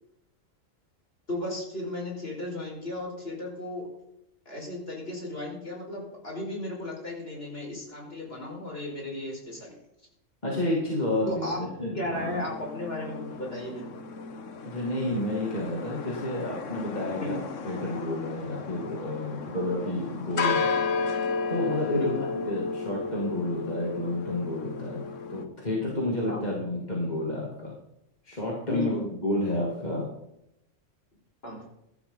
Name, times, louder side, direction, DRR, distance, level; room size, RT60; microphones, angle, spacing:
voice 1, 1.3-3.9 4.5-9.8 11.3-13.9 17.2-17.3 21.9-22.1 26.3-26.5 28.7-29.0 31.4-31.6, left 1 dB, 50° left, -2 dB, 5.4 m, -35 dB
voice 2, 10.4-12.5 14.6-17.4 17.6-20.7 21.5-25.0 25.3-27.7 28.2-28.9 29.2-30.1, left 1 dB, 35° left, -4 dB, 3.0 m, -30 dB
sound 1, 12.1-25.4, left 5 dB, 70° left, 1.4 m, -33 dB
15.5 x 13.0 x 4.0 m, 0.83 s
omnidirectional pair, 1.3 m